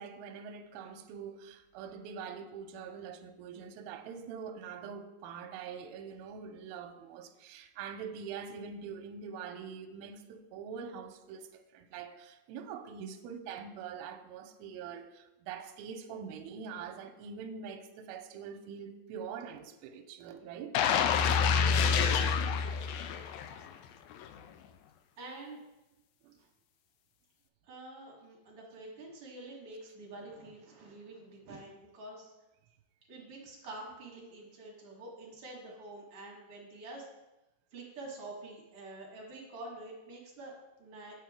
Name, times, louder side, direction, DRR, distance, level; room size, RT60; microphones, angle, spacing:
voice 1, 0.0-20.8 26.2-26.4, right 6 dB, 80° right, 6 dB, 2.4 m, -44 dB
sound 1, 20.7-23.7 24.1-24.3, left 6 dB, 85° left, 2.1 m, -27 dB
voice 2, 21.6-22.2 25.2-25.6 27.6-32.3 33.1-37.1 37.7-41.2, right 2 dB, 55° right, -2 dB, 1.6 m, -47 dB
8.5 x 7.9 x 3.5 m, 0.99 s
omnidirectional pair, 4.7 m